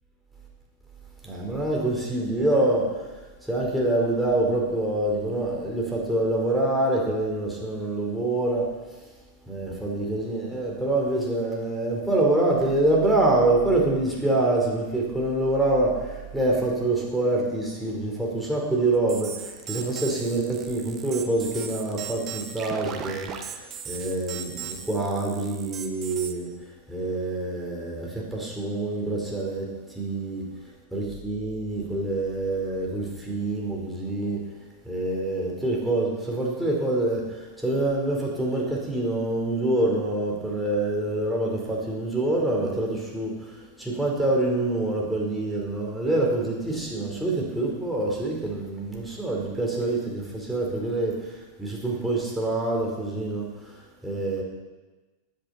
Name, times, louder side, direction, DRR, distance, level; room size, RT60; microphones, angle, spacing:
voice 1, 1.2-2.9 3.4-8.7 9.5-26.5 26.9-30.5 30.9-34.4 34.8-54.4, right 2 dB, ahead, -3 dB, 3.9 m, -26 dB
sound 1, 19.1-26.3, right 8 dB, 30° right, 1.3 m, -37 dB
15.0 x 10.5 x 4.2 m, 1.2 s
figure-of-eight pair, 90°, 0 cm